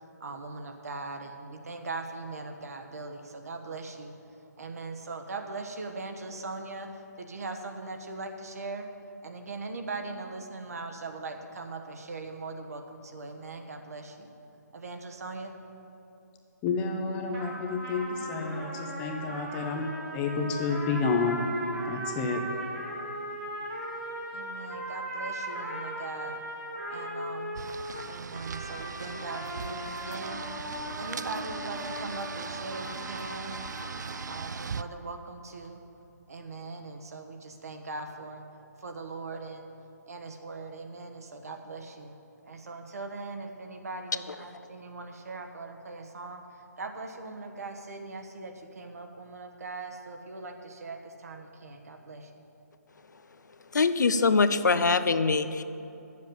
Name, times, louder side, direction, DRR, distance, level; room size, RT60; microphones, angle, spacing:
voice 1, 0.2-4.2 4.6-8.9 9.2-14.3 14.7-15.5 24.3-26.4 26.9-27.5 28.1-30.4 30.9-33.6 34.3-35.8 36.3-38.4 38.8-39.7 40.1-42.2 42.4-52.3, right 3 dB, 60° right, 5 dB, 1.1 m, -40 dB
voice 2, 16.6-19.9 20.1-21.4 21.8-22.5, left 4 dB, 10° left, 3 dB, 0.6 m, -30 dB
sound 1, 17.3-34.5, equal, 15° right, 1.5 m, -38 dB
sound 2, 27.5-34.8, right 5 dB, 85° right, 0.4 m, -39 dB
voice 3, 53.7-55.6, left 4 dB, 90° left, 12 dB, 0.6 m, -23 dB
9.1 x 7.4 x 7.8 m, 2.9 s
hypercardioid pair, 165°, 9 cm